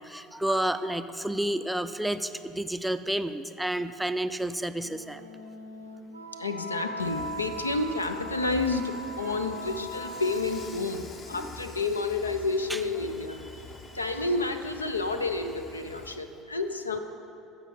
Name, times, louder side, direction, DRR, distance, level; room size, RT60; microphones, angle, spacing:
voice 1, 0.0-5.2 12.7-12.9 13.4-14.0, right 1 dB, 5° right, 10 dB, 0.4 m, -31 dB
Wind instrument woodwind instrument, 4.7-11.0, right 1 dB, 85° right, 0.5 m, -40 dB
voice 2, 6.4-13.4 13.9-17.0, left 3 dB, 85° left, 8 dB, 0.4 m, -30 dB
Dishes pots and pans / Frying (food), 7.0-16.2, left 3 dB, 40° left, 1.0 m, -46 dB
14.0 x 4.9 x 5.5 m, 2.8 s
figure-of-eight pair, 65°, 0 cm